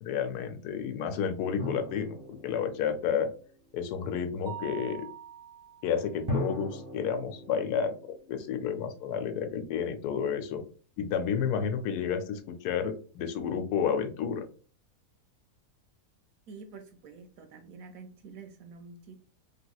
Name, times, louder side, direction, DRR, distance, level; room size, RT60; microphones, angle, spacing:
voice 1, 0.0-3.3 3.7-5.1 5.8-10.6 11.0-14.5, left 7 dB, 80° left, 7 dB, 1.1 m, -31 dB
sound 1, 1.6-3.9 6.3-9.2, left 1 dB, 15° right, 0.7 m, -39 dB
Mallet percussion, 4.5-6.2, right 9 dB, 90° right, 0.5 m, -44 dB
voice 2, 16.5-19.1, right 4 dB, 70° right, 6 dB, 0.9 m, -48 dB
3.4 x 2.8 x 2.3 m, 0.40 s
omnidirectional pair, 1.7 m